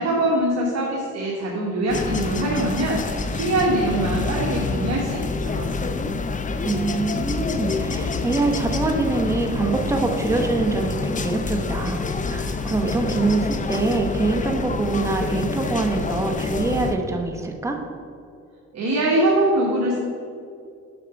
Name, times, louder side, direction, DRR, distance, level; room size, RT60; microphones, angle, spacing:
voice 1, 0.0-5.7 18.7-20.0, right 1 dB, 60° right, -3 dB, 1.4 m, -23 dB
sound 1, 1.9-16.9, left 4 dB, 25° left, 0.5 m, -27 dB
voice 2, 6.6-17.8, right 3 dB, 10° right, 2 dB, 0.9 m, -24 dB
6.8 x 5.8 x 5.1 m, 2.4 s
cardioid pair, 90°, 30 cm